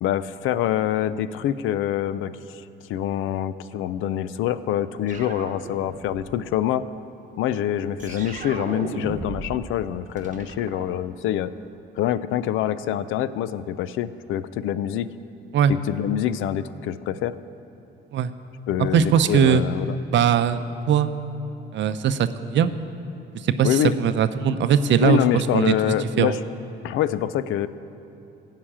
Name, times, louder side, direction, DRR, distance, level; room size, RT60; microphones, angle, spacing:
voice 1, 0.0-2.6 2.9-6.8 7.4-11.5 12.0-15.1 15.7-17.3 18.7-20.0 23.6-24.0 25.0-26.4 26.8-27.7, left 11 dB, 85° left, 15 dB, 0.5 m, -25 dB
sound 1, 5.1-6.4 8.0-9.7 9.9-11.5, right 4 dB, 40° right, 1.1 m, -36 dB
voice 2, 18.9-19.6 20.1-20.6 20.9-21.1 21.7-22.7 23.4-23.7 24.0-26.3, right 8 dB, 70° right, 11 dB, 0.6 m, -20 dB
16.0 x 5.8 x 8.7 m, 2.9 s
cardioid pair, 90°, 20 cm